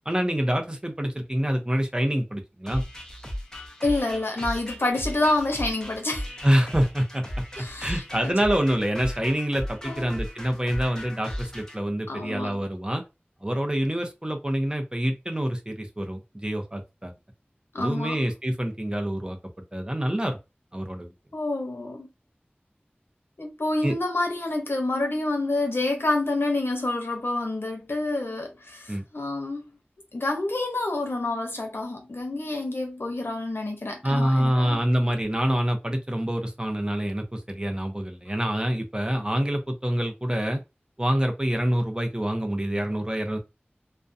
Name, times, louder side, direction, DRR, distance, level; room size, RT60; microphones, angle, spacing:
voice 1, 0.0-2.8 6.4-7.4 7.8-13.0 13.4-17.1 17.8-19.4 19.7-20.4 20.7-21.1 23.8-23.9 28.9-29.0 34.0-40.6 41.0-43.4, equal, 20° right, 0.6 m, -26 dB
sound 1, 2.7-11.8, equal, 15° left, 0.7 m, -36 dB
voice 2, 3.8-6.3 7.6-8.3 9.8-10.2 12.1-12.6 17.7-18.2 21.3-22.1 23.4-29.6 30.1-34.8, left 2 dB, 75° left, 0.7 m, -28 dB
2.4 x 2.2 x 2.5 m
wide cardioid pair, 40°, 4 cm